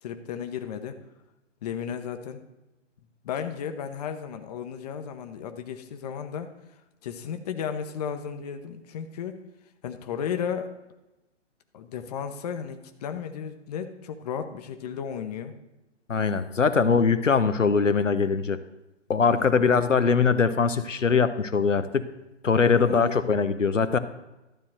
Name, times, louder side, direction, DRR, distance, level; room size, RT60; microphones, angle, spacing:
voice 1, 0.0-1.0 1.6-2.4 3.2-6.5 7.0-9.4 9.8-10.7 11.7-15.5 19.4-19.7 22.7-23.2, left 7 dB, 35° left, 7 dB, 0.9 m, -34 dB
voice 2, 16.1-18.6 19.1-22.1 22.4-24.0, left 5 dB, 90° left, 11 dB, 0.8 m, -22 dB
12.5 x 4.1 x 7.7 m, 1.0 s
figure-of-eight pair, 130°, 36 cm